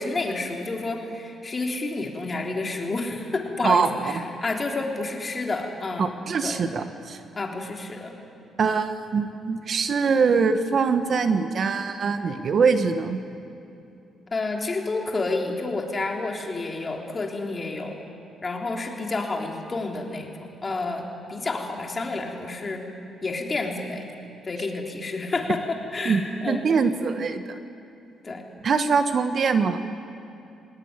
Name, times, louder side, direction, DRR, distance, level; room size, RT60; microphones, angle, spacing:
voice 1, 0.0-6.1 6.4-6.6 7.4-8.2 14.3-18.1 18.4-22.8 23.2-24.1 24.4-26.6 28.2-28.5, left 3 dB, 30° left, 1 dB, 3.7 m, -30 dB
voice 2, 6.0-7.2 8.6-13.2 26.0-27.5 28.6-29.8, right 5 dB, 50° right, 8 dB, 1.4 m, -23 dB
20.5 x 19.0 x 9.8 m, 2.7 s
cardioid pair, 90°, 0 cm